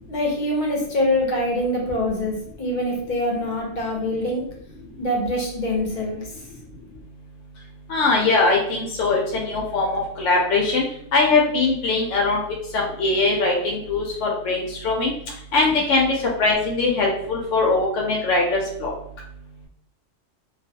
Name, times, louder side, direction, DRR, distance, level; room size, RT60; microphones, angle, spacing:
voice 1, 0.1-4.4 5.0-6.2, left 1 dB, 50° left, -2 dB, 0.7 m, -24 dB
voice 2, 7.9-10.8 11.1-12.4 12.7-15.1 15.5-18.9, left 3 dB, 85° left, -2 dB, 0.9 m, -21 dB
2.3 x 2.3 x 2.7 m, 0.67 s
omnidirectional pair, 1.2 m